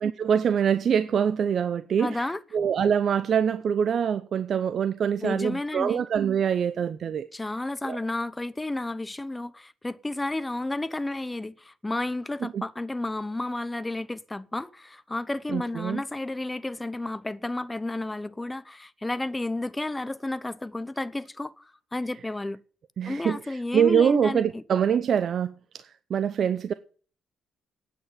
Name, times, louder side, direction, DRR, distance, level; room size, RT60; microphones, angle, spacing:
voice 1, 0.0-7.3 7.8-8.0 12.4-12.6 15.5-16.0 23.0-26.7, right 8 dB, 55° right, 0.7 m, -25 dB
voice 2, 2.0-2.4 5.2-6.0 7.3-22.6 23.1-24.6, left 2 dB, 15° left, 0.8 m, -32 dB
9.4 x 8.2 x 9.2 m
cardioid pair, 90°, 0 cm